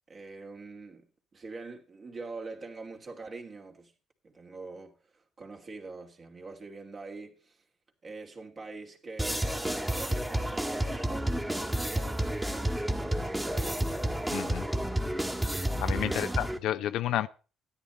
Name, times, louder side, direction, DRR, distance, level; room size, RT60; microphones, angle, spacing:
voice 1, 0.1-3.9 4.2-7.6 8.0-11.3 11.8-13.7 15.9-16.3, right 3 dB, 40° right, 2.9 m, -44 dB
sound 1, 9.2-16.6, right 1 dB, 10° right, 1.8 m, -30 dB
voice 2, 14.3-14.7 15.8-17.3, left 12 dB, 65° left, 0.6 m, -31 dB
13.0 x 10.0 x 4.2 m
hypercardioid pair, 50°, 0 cm